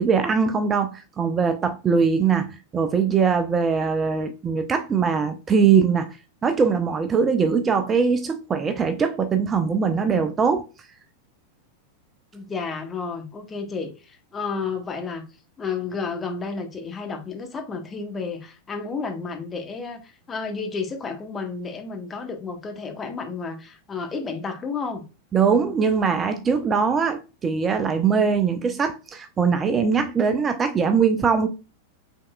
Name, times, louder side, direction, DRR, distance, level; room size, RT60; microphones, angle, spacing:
voice 1, 0.0-6.2 6.4-10.7 25.3-31.5, right 6 dB, 20° right, 0.4 m, -21 dB
voice 2, 12.3-15.2 15.6-25.0, left 4 dB, 20° left, 0.9 m, -31 dB
5.2 x 3.5 x 2.2 m
figure-of-eight pair, 90°, 0 cm